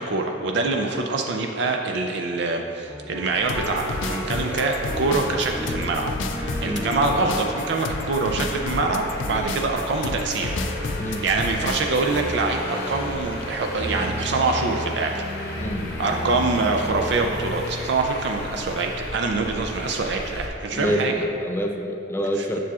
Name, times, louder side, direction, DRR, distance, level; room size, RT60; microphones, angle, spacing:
voice 1, 0.0-6.1 6.6-15.2 16.0-21.2 22.4-22.6, right 3 dB, 65° right, 3 dB, 0.4 m, -25 dB
sound 1, 2.9-18.6, equal, 10° right, 0.9 m, -34 dB
Traffic noise roadway noise, 3.3-20.5, left 2 dB, 55° left, 0.8 m, -37 dB
sound 2, 3.5-12.2, left 3 dB, 85° left, 0.4 m, -32 dB
voice 2, 15.6-15.9 20.7-22.6, equal, 15° left, 3 dB, 0.4 m, -27 dB
7.4 x 6.8 x 2.4 m, 2.7 s
head